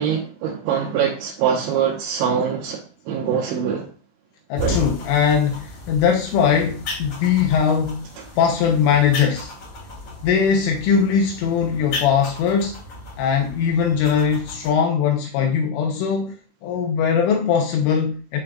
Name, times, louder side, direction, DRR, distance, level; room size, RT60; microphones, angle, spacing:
voice 1, 0.0-3.9 4.6-4.8, right 8 dB, 75° right, 3.1 m, -23 dB
voice 2, 4.5-8.1 8.4-9.5 10.2-12.8 13.2-16.4 16.6-18.4, left 7 dB, 80° left, 3.3 m, -20 dB
sound 1, 4.6-14.7, left 2 dB, 40° left, 4.0 m, -34 dB
14.5 x 5.2 x 2.5 m
omnidirectional pair, 5.9 m